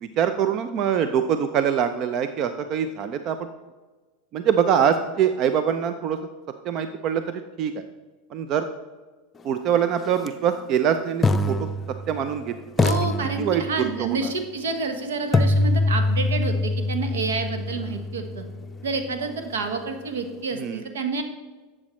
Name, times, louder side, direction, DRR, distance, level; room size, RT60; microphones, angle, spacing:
voice 1, 0.0-3.5 4.3-6.2 6.6-7.8 8.3-8.7 9.4-11.6 12.1-12.5 13.4-14.3 20.5-20.8, right 8 dB, 45° right, 9 dB, 0.5 m, -24 dB
sound 1, 10.1-10.3 11.2-12.4 12.8-14.0 15.3-19.3, left 2 dB, 20° left, 0.6 m, -24 dB
voice 2, 12.8-18.4 18.8-21.2, right 4 dB, 80° right, 6 dB, 1.2 m, -28 dB
12.0 x 7.5 x 3.2 m, 1.3 s
hypercardioid pair, 90°, 0 cm